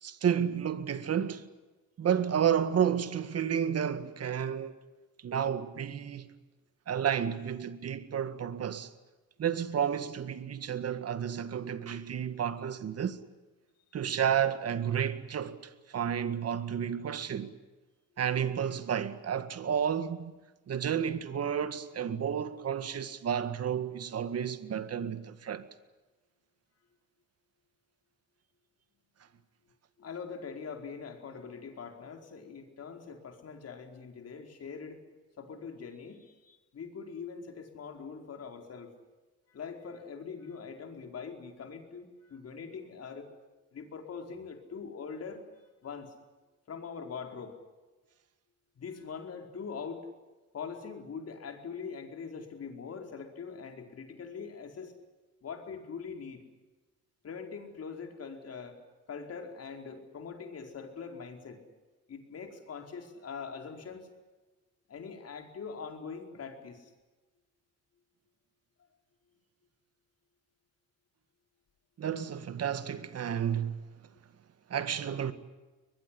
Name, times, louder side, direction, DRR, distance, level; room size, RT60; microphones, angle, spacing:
voice 1, 0.0-1.5 2.0-4.8 5.2-6.3 6.9-8.9 9.4-13.2 13.9-17.5 18.2-20.3 20.7-25.7 72.0-73.8 74.7-75.3, right 8 dB, 55° right, 1.9 m, -31 dB
voice 2, 30.0-35.0 35.4-38.9 39.5-43.3 43.7-45.4 45.8-46.1 46.7-47.5 48.7-50.1 50.5-54.9 55.4-56.4 57.2-58.8 59.1-61.6 62.1-64.1 64.9-66.9, left 5 dB, 55° left, 4.8 m, -43 dB
22.5 x 21.5 x 10.0 m
cardioid pair, 90°, 30 cm